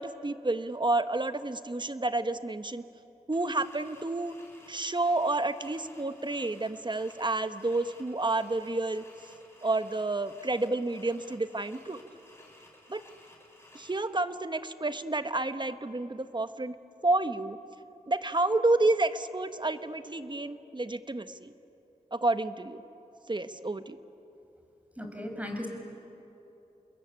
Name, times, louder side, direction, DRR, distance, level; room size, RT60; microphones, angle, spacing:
voice 1, 0.0-2.8 3.3-4.3 4.7-9.0 9.6-12.0 12.9-13.0 13.7-16.7 17.0-17.6 18.1-21.5 22.1-22.8 23.3-24.0, right 2 dB, 30° right, 10 dB, 1.4 m, -30 dB
sound 1, 3.3-14.0, left 1 dB, 15° left, 7.4 m, -56 dB
voice 2, 25.0-25.7, left 1 dB, 10° right, 3 dB, 6.4 m, -36 dB
29.0 x 21.5 x 9.0 m, 2.9 s
cardioid pair, 45°, 15 cm